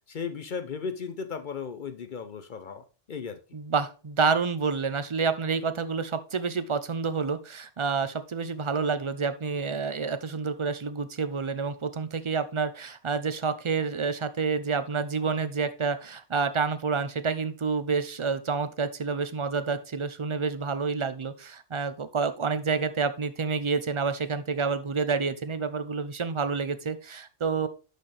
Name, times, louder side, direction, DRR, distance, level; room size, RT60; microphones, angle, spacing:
voice 1, 0.1-3.4, left 5 dB, 55° left, 8 dB, 0.7 m, -36 dB
voice 2, 3.5-27.7, right 5 dB, 35° right, 12 dB, 0.5 m, -28 dB
11.0 x 4.4 x 3.2 m, 0.34 s
omnidirectional pair, 1.1 m